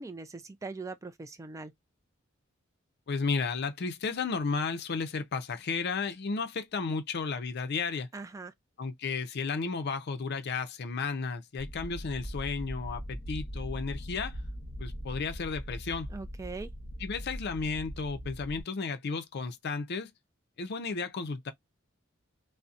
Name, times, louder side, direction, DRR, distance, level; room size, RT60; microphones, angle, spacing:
voice 1, 0.0-1.7 8.1-8.5 16.1-16.7, right 3 dB, 15° right, 0.3 m, -41 dB
voice 2, 3.1-8.1 8.8-14.3 14.8-16.1 17.0-20.1 20.6-21.5, left 4 dB, 55° left, 0.5 m, -33 dB
sound 1, 11.6-18.6, equal, 35° left, 0.9 m, -40 dB
2.7 x 2.1 x 2.4 m
head